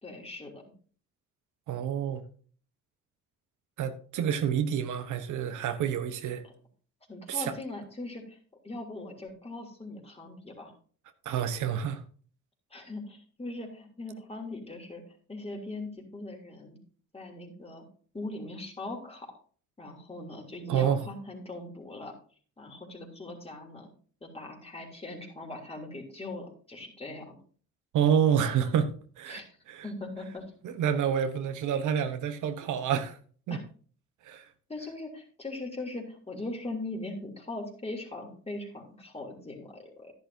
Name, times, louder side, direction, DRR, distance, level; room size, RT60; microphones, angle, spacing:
voice 1, 0.0-0.6 6.4-6.5 7.1-8.4 8.6-10.7 12.7-15.0 15.3-16.8 17.1-17.9 18.1-19.3 19.8-22.1 22.6-23.9 24.2-27.4 29.3-29.6 29.8-30.5 33.5-33.6 34.7-40.1, left 2 dB, 20° left, 3.1 m, -40 dB
voice 2, 1.7-2.2 3.8-6.4 7.3-7.5 11.2-12.0 20.7-21.0 27.9-28.9 29.2-29.4 29.7-29.8 30.6-33.2 33.5-33.6 34.2-34.4, right 8 dB, 80° right, 1.1 m, -28 dB
11.5 x 10.5 x 2.7 m
cardioid pair, 90°, 30 cm